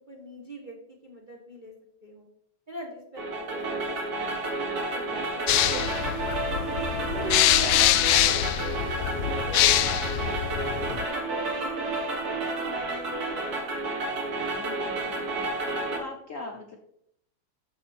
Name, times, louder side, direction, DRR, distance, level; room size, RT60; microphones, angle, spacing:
voice 1, 0.1-1.7 2.0-2.3 2.7-4.4 4.7-6.7 7.0-8.7 9.1-12.7, right 1 dB, 30° right, -1 dB, 1.0 m, -42 dB
sound 1, 3.2-16.0, right 2 dB, 50° right, 1.8 m, -30 dB
sound 2, 5.5-11.1, left 13 dB, 80° left, 1.5 m, -24 dB
voice 2, 14.4-15.4 15.9-16.8, left 2 dB, 50° left, 1 dB, 1.0 m, -41 dB
12.0 x 4.8 x 4.3 m, 0.72 s
omnidirectional pair, 2.4 m